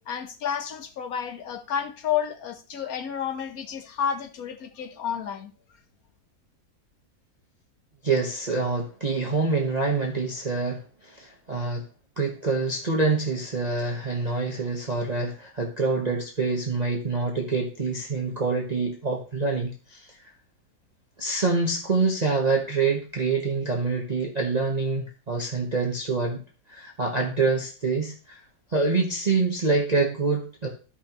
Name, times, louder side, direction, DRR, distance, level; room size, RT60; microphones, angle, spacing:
voice 1, 0.1-5.5, left 8 dB, 65° left, 1.4 m, -30 dB
voice 2, 8.0-11.9 12.2-20.2 21.2-26.4 26.7-28.4 28.7-30.7, right 3 dB, 30° right, 1.0 m, -26 dB
12.5 x 5.6 x 2.9 m
omnidirectional pair, 1.7 m